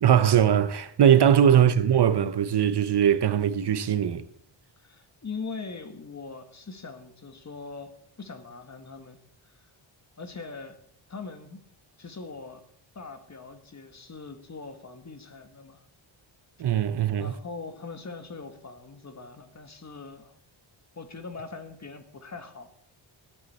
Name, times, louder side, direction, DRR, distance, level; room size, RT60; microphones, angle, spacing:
voice 1, 0.0-4.3 16.6-17.3, right 9 dB, 55° right, 0.7 m, -21 dB
voice 2, 4.8-9.2 9.4-9.5 10.2-10.8 11.1-11.6 12.0-12.6 12.9-15.9 17.2-20.4 20.9-22.7, left 4 dB, 35° left, 1.4 m, -41 dB
18.0 x 11.5 x 4.2 m
wide cardioid pair, 140°, 48 cm